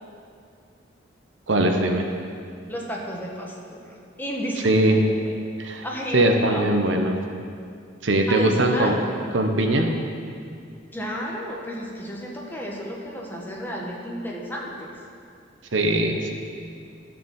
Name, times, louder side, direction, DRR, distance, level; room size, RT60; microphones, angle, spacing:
voice 1, 1.5-2.1 4.6-5.0 5.6-5.8 6.1-7.2 8.0-9.0 9.3-9.9 15.7-16.3, right 1 dB, 70° right, 4 dB, 1.0 m, -20 dB
voice 2, 2.7-5.4 5.8-6.6 8.2-9.0 10.9-15.0, equal, 10° left, -2 dB, 1.4 m, -33 dB
13.0 x 5.0 x 7.1 m, 2.3 s
head